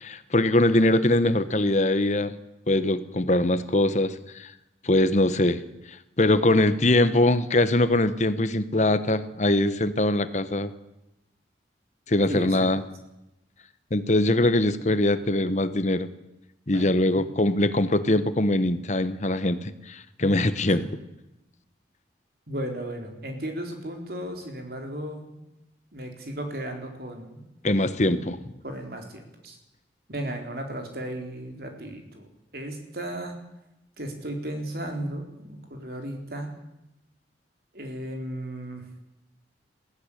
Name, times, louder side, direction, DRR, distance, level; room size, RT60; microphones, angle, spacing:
voice 1, 0.0-2.4 2.7-4.5 4.8-5.6 6.2-10.7 12.1-12.8 13.9-16.1 16.7-20.8 27.6-28.4, left 1 dB, 40° left, 12 dB, 1.1 m, -22 dB
voice 2, 12.3-12.7 16.7-17.2 20.7-20.8 22.5-25.3 25.9-27.4 28.6-29.6 30.1-32.3 32.5-33.4 34.0-36.5 37.7-38.8, right 1 dB, 60° right, 4 dB, 3.9 m, -35 dB
21.0 x 15.0 x 10.0 m, 0.92 s
head